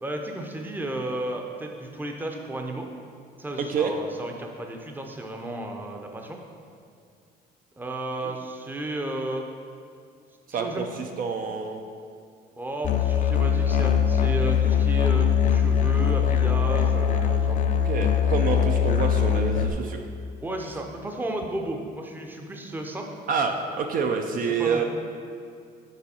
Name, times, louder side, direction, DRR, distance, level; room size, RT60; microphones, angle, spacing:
voice 1, 0.0-2.9 3.4-6.4 7.8-9.5 10.6-10.9 12.6-17.6 20.4-23.1 24.4-24.8, right 1 dB, 10° right, 2 dB, 0.6 m, -33 dB
voice 2, 3.6-3.9 10.5-11.8 17.8-20.0 23.3-24.8, right 5 dB, 55° right, 4 dB, 0.5 m, -27 dB
Musical instrument, 12.8-19.7, left 7 dB, 50° left, 0.5 m, -22 dB
6.9 x 4.6 x 4.3 m, 2.3 s
cardioid pair, 110°, 17 cm